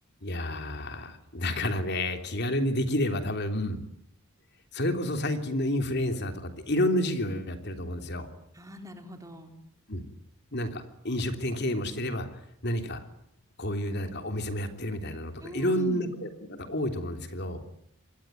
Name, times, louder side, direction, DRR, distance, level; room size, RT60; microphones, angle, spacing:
voice 1, 0.2-3.8 4.7-8.3 9.9-10.0 10.5-12.3 12.6-13.0 13.6-17.6, left 1 dB, 50° left, 7 dB, 3.3 m, -30 dB
voice 2, 8.5-9.5 15.4-16.2, equal, 15° right, 5 dB, 3.8 m, -41 dB
27.0 x 21.5 x 9.3 m, 0.72 s
head